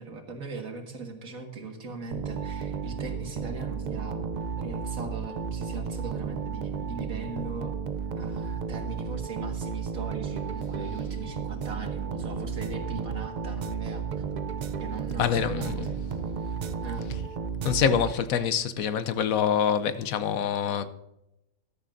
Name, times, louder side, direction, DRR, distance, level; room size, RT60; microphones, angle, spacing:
voice 1, 0.0-4.2 4.6-7.7 8.2-14.0 14.8-15.9 16.4-16.6 16.8-17.1, right 3 dB, 80° right, 2.2 m, -39 dB
sound 1, 2.1-18.5, right 6 dB, 60° right, 0.4 m, -33 dB
voice 2, 15.2-15.8 17.6-20.9, left 8 dB, 80° left, 1.2 m, -25 dB
14.0 x 12.5 x 2.6 m
omnidirectional pair, 1.4 m